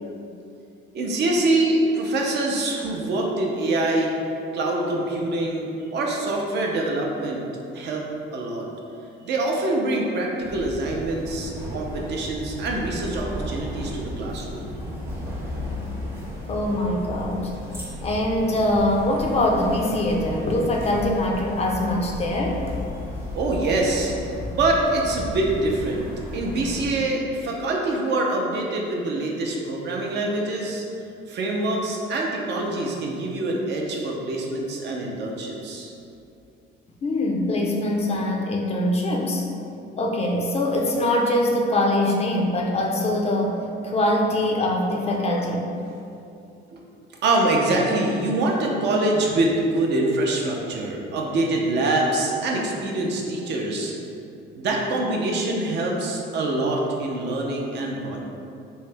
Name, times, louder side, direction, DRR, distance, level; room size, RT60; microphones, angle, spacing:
voice 1, 0.9-4.1 4.5-7.4 7.7-8.1 8.3-8.7 9.2-14.7 23.3-24.1 24.5-30.8 31.3-35.9 46.7-46.8 47.2-53.9 54.5-58.2, right 2 dB, 55° right, -1 dB, 0.6 m, -25 dB
sound 1, 10.4-27.0, left 1 dB, 10° right, 0.6 m, -34 dB
voice 2, 16.5-17.5 18.0-22.6 37.0-39.5 40.0-45.7, left 1 dB, 30° left, 0 dB, 0.4 m, -23 dB
3.1 x 2.8 x 3.3 m, 2.6 s
cardioid pair, 135°, 21 cm